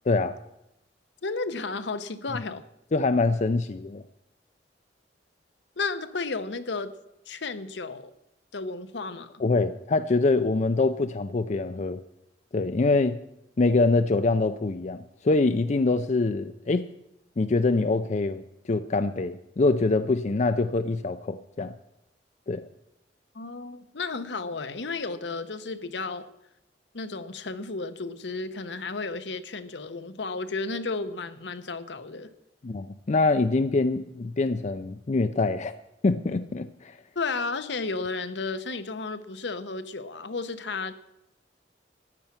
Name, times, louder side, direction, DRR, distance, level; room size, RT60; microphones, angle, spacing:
voice 1, 0.1-0.4 2.9-4.0 9.4-12.0 12.5-13.2 13.6-16.9 17.4-18.4 18.7-21.7 22.5-22.6 32.6-35.7 36.0-36.9, left 3 dB, 40° left, 10 dB, 0.5 m, -24 dB
voice 2, 1.2-2.6 5.8-6.9 7.3-8.1 8.5-9.3 23.3-26.3 26.9-32.3 37.1-40.9, left 3 dB, 80° left, 11 dB, 0.9 m, -33 dB
14.0 x 9.9 x 6.0 m, 0.85 s
head